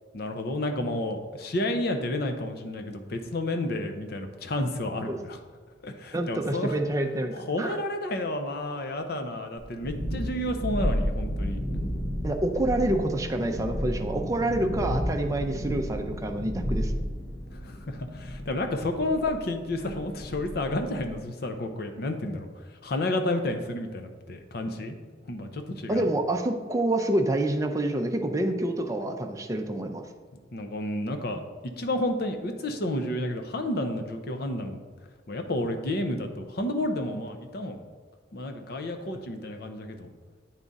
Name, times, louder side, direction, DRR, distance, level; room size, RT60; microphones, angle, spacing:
voice 1, 0.1-5.4 5.8-6.8 7.3-11.6 17.5-25.0 25.3-26.1 30.5-34.8 35.3-37.8 38.3-40.1, left 1 dB, 55° left, 6 dB, 0.6 m, -31 dB
voice 2, 6.1-7.3 7.6-7.8 12.2-16.9 25.9-30.1, right 1 dB, 15° right, 4 dB, 0.5 m, -27 dB
Thunderstorm, 9.6-21.1, equal, 80° left, 1.4 m, -32 dB
8.9 x 3.6 x 4.0 m, 1.5 s
head